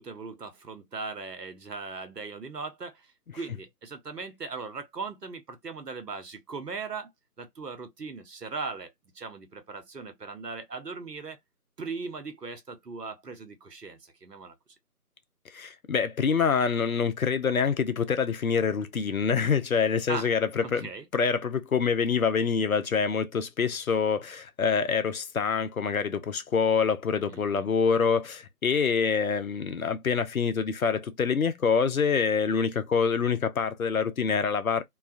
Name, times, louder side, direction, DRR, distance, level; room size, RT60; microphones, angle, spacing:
voice 1, 0.0-3.0 3.3-7.1 7.4-11.4 11.8-14.5 20.1-20.3 20.6-21.1 27.3-27.7, right 4 dB, 90° right, 0.9 m, -39 dB
voice 2, 15.5-34.8, left 6 dB, 65° left, 0.5 m, -26 dB
2.3 x 2.2 x 2.4 m
figure-of-eight pair, 160°, 47 cm